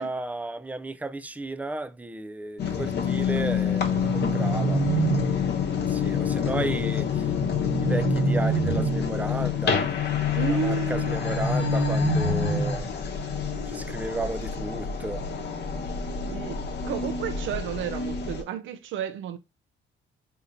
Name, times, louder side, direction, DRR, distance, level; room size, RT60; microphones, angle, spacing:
voice 1, 0.0-4.8 5.9-7.3 7.8-9.9 10.5-12.9 13.7-15.3, right 2 dB, 10° right, 0.3 m, -33 dB
sound 1, 2.6-18.4, left 8 dB, 60° left, 0.9 m, -28 dB
sound 2, 3.7-5.7 7.3-9.2 11.0-13.0, right 5 dB, 45° right, 1.2 m, -27 dB
voice 2, 10.3-11.2 12.4-12.8 16.2-19.4, right 9 dB, 75° right, 0.6 m, -32 dB
3.9 x 2.8 x 2.7 m
cardioid pair, 90°, 20 cm